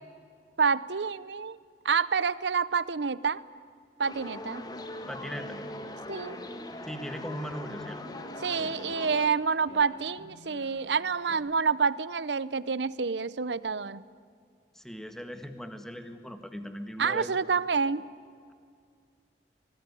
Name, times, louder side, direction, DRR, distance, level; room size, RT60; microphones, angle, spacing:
voice 1, 0.6-1.6 1.8-3.4 4.0-4.6 6.1-6.4 8.4-14.0 17.0-18.0, right 5 dB, 80° right, 18 dB, 0.7 m, -28 dB
sound 1, 4.0-9.3, left 1 dB, 25° left, 1.7 m, -41 dB
sound 2, 4.7-7.6 8.0-10.8 11.3-11.4, equal, 75° left, 7.9 m, -48 dB
voice 2, 5.1-5.6 6.8-8.0 14.7-17.4, equal, ahead, 8 dB, 1.7 m, -39 dB
24.5 x 19.5 x 10.0 m, 2.1 s
head